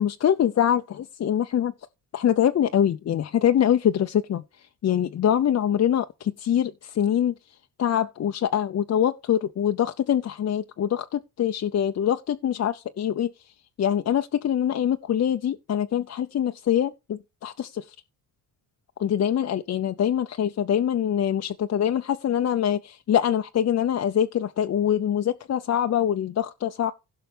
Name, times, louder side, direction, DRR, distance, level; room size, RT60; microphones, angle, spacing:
voice 1, 0.0-1.7 2.1-4.4 4.8-7.3 7.8-13.3 13.8-17.9 19.0-26.9, left 9 dB, 40° left, 0.6 m, -24 dB
16.5 x 5.6 x 3.3 m
cardioid pair, 95°, 40 cm